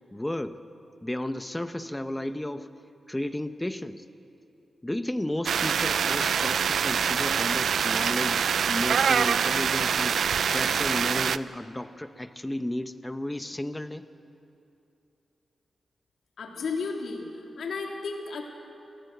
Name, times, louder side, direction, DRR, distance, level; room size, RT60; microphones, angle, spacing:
voice 1, 0.1-0.6 1.0-2.7 3.1-4.0 4.8-10.2 10.5-14.0, left 1 dB, 10° left, 10 dB, 0.9 m, -33 dB
sound 1, 5.5-11.4, right 7 dB, 80° right, 0.5 m, -25 dB
voice 2, 16.4-18.4, left 4 dB, 85° left, 1 dB, 3.3 m, -33 dB
28.0 x 18.0 x 8.1 m, 2.7 s
wide cardioid pair, 110°, 0 cm